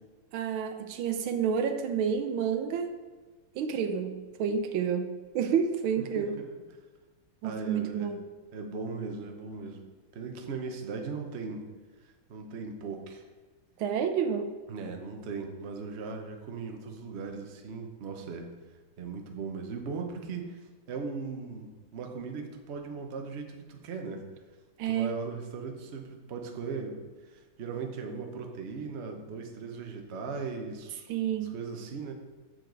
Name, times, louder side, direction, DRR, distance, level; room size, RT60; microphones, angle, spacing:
voice 1, 0.3-2.9 3.5-6.4 7.4-8.2 13.8-14.5 24.8-25.1 31.1-31.5, right 7 dB, 85° right, 7 dB, 1.5 m, -29 dB
voice 2, 6.0-6.4 7.4-8.1 8.5-9.8 10.1-11.7 12.0-13.2 14.7-18.5 19.0-20.6 20.9-24.2 24.8-27.0 27.2-32.1, right 4 dB, 50° right, 3 dB, 0.9 m, -38 dB
7.7 x 7.1 x 3.9 m, 1.4 s
omnidirectional pair, 2.2 m